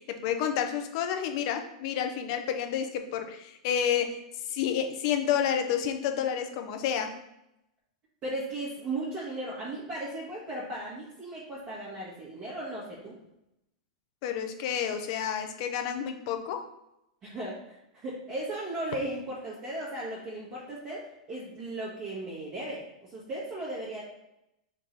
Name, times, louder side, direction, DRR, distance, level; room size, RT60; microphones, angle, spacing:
voice 1, 0.0-4.2 4.5-7.1 14.2-16.6, left 8 dB, 50° left, 6 dB, 0.7 m, -30 dB
voice 2, 8.2-13.2 17.2-24.0, right 1 dB, 30° right, -8 dB, 1.5 m, -36 dB
3.7 x 2.6 x 4.6 m, 0.86 s
hypercardioid pair, 130°, 4 cm